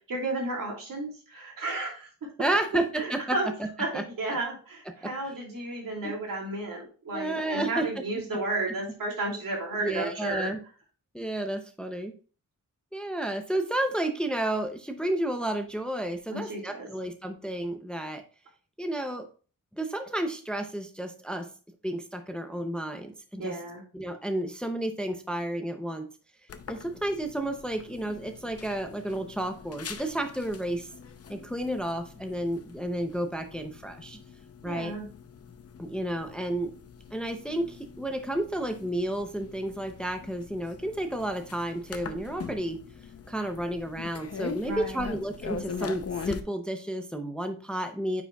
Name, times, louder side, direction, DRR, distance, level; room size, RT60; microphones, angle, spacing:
voice 1, 0.1-2.1 3.0-3.5 3.8-10.5 16.3-16.9 23.4-23.8 34.6-35.0 44.6-45.1, right 2 dB, 80° right, -1 dB, 2.6 m, -33 dB
voice 2, 2.4-3.4 3.9-4.0 4.9-5.3 6.0-6.1 7.1-7.9 9.8-10.6 11.1-12.1 12.9-18.2 18.8-19.3 19.8-21.5 21.8-23.6 23.9-26.1 26.7-30.9 31.3-34.2 34.6-34.9 35.8-36.7 37.1-42.8 43.3-48.2, right 1 dB, 5° left, 6 dB, 0.6 m, -31 dB
sound 1, 26.5-46.4, left 6 dB, 45° left, 0.6 m, -42 dB
9.0 x 5.0 x 2.3 m, 0.38 s
wide cardioid pair, 170°, 33 cm